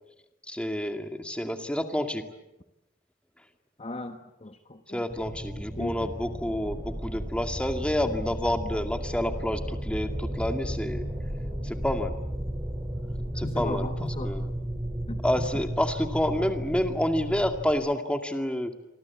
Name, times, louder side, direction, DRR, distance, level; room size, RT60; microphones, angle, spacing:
voice 1, 0.5-2.2 4.9-11.1 11.6-12.2 13.4-13.9 14.2-14.4 15.2-18.7, left 1 dB, 5° left, 6 dB, 2.2 m, -28 dB
voice 2, 3.8-5.1 5.8-6.1 13.3-14.4 15.1-15.6, left 2 dB, 30° left, 7 dB, 1.3 m, -37 dB
sound 1, 5.1-17.7, right 1 dB, 15° right, 5.9 m, -34 dB
28.5 x 24.5 x 8.5 m, 0.92 s
head